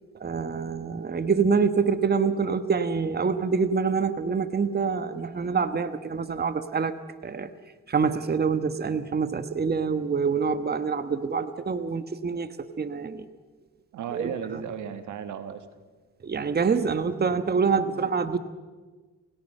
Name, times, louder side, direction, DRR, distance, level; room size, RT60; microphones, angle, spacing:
voice 1, 0.2-6.9 7.2-7.5 7.9-13.3 14.1-14.3 16.2-18.4, right 5 dB, 35° right, 10 dB, 1.3 m, -26 dB
voice 2, 13.9-15.7 17.7-18.1, right 8 dB, 80° right, 9 dB, 1.7 m, -35 dB
28.0 x 17.5 x 5.5 m, 1.3 s
cardioid pair, 70°, 29 cm